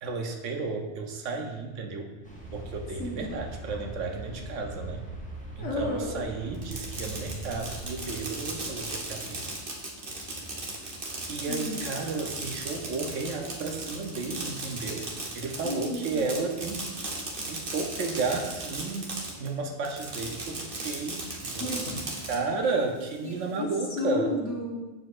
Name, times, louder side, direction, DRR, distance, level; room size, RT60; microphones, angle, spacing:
voice 1, 0.0-2.1 2.5-5.0 5.6-9.5 11.3-16.8 17.5-21.7 22.3-24.3, right 4 dB, 85° right, 3 dB, 1.1 m, -33 dB
sound 1, 2.2-9.4, right 2 dB, 5° left, 0.8 m, -42 dB
voice 2, 3.0-3.3 5.6-6.2 11.5-11.9 15.6-16.2 21.6-22.1 23.2-23.7 24.0-24.9, left 2 dB, 75° left, -2 dB, 1.5 m, -32 dB
Fireworks, 6.5-19.5 19.8-22.4, right 2 dB, 50° right, 1.1 m, -36 dB
6.8 x 6.1 x 2.5 m, 1.2 s
omnidirectional pair, 1.2 m